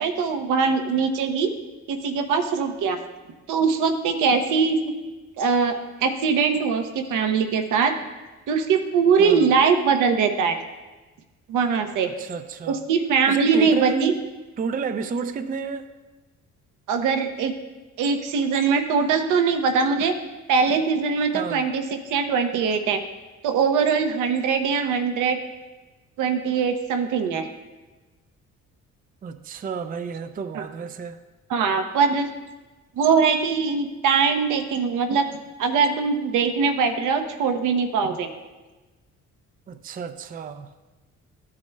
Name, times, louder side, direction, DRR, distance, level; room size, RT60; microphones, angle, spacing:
voice 1, 0.0-1.5 1.9-3.0 3.5-4.9 5.4-5.7 6.0-7.9 8.5-10.6 11.5-12.1 12.7-14.1 16.9-17.5 18.0-20.1 20.5-21.8 22.1-23.0 23.4-25.4 26.2-27.5 30.5-30.6 31.5-32.3 33.0-35.2 35.6-38.3, right 5 dB, 85° right, 0.8 m, -21 dB
voice 2, 9.2-9.5 12.1-12.8 13.3-14.2 14.6-15.9 21.3-21.7 29.2-31.2 39.7-40.7, right 6 dB, 30° right, 0.4 m, -31 dB
13.0 x 7.4 x 2.2 m
cardioid pair, 90°, 30 cm